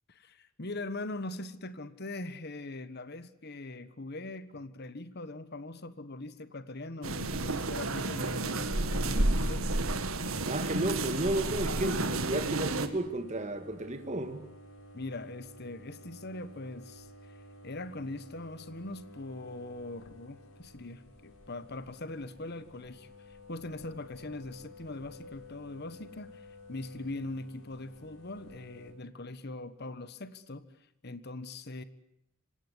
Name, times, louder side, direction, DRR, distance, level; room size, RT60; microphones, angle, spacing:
voice 1, 0.1-9.8 14.9-17.1 17.6-30.7 31.0-31.8, left 2 dB, 50° left, 13 dB, 1.4 m, -41 dB
sound 1, 7.0-12.9, right 2 dB, 75° right, 1.9 m, -31 dB
sound 2, 10.3-28.9, left 1 dB, 80° left, 5.4 m, -53 dB
voice 2, 10.4-14.5, right 1 dB, 35° right, 7 dB, 1.9 m, -33 dB
26.0 x 17.5 x 9.6 m, 0.79 s
head